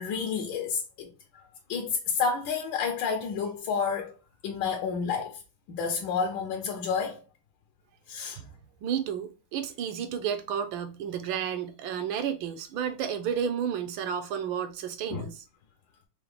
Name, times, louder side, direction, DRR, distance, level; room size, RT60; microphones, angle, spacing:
voice 1, 0.0-4.1 4.4-5.4 5.7-7.2 8.1-8.4 15.1-15.3, left 5 dB, 70° left, 1.3 m, -30 dB
voice 2, 8.8-15.4, right 8 dB, 75° right, 1.2 m, -32 dB
4.6 x 2.0 x 3.4 m
omnidirectional pair, 2.3 m